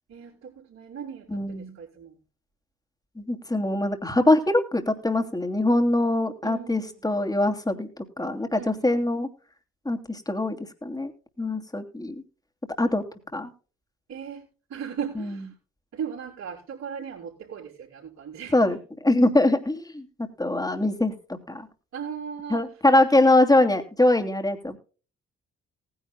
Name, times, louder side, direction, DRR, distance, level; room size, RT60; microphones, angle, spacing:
voice 1, 0.1-2.2 6.4-7.0 8.6-9.0 14.1-15.5 15.9-18.8 21.9-22.7, right 7 dB, 65° right, -7 dB, 5.0 m, -38 dB
voice 2, 1.3-1.8 3.2-9.3 9.8-11.1 11.4-12.2 12.8-13.0 13.3-13.5 15.2-15.4 18.5-18.8 19.0-21.1 21.5-21.7 22.5-24.8, left 1 dB, 15° left, 6 dB, 2.8 m, -23 dB
19.0 x 10.5 x 2.3 m, 0.38 s
hypercardioid pair, 45°, 29 cm